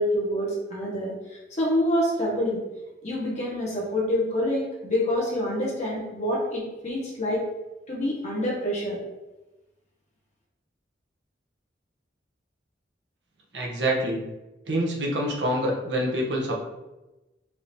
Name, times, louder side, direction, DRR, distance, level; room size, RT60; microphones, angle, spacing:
voice 1, 0.0-2.6 3.0-7.4 7.9-9.0, left 1 dB, 40° left, -5 dB, 1.4 m, -27 dB
voice 2, 13.5-14.2 14.7-16.6, right 1 dB, 70° right, -1 dB, 1.0 m, -26 dB
4.8 x 2.8 x 3.3 m, 1.0 s
head